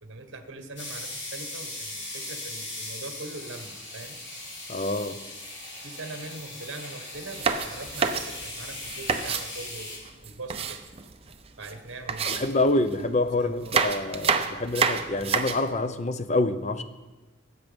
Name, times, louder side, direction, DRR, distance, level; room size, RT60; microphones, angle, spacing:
voice 1, 0.0-4.2 5.8-10.8 11.6-12.7 13.4-13.8, right 2 dB, 60° right, 6 dB, 1.5 m, -42 dB
sound 1, 0.8-10.0, left 2 dB, 60° left, 4.3 m, -39 dB
voice 2, 4.7-5.2 12.2-16.8, left 2 dB, 35° left, 11 dB, 0.6 m, -26 dB
sound 2, 7.2-9.5 10.0-11.3 11.6-11.7 12.1-13.1 13.5-15.7, right 5 dB, 30° right, 0.7 m, -28 dB
18.5 x 8.3 x 5.3 m, 1.2 s
head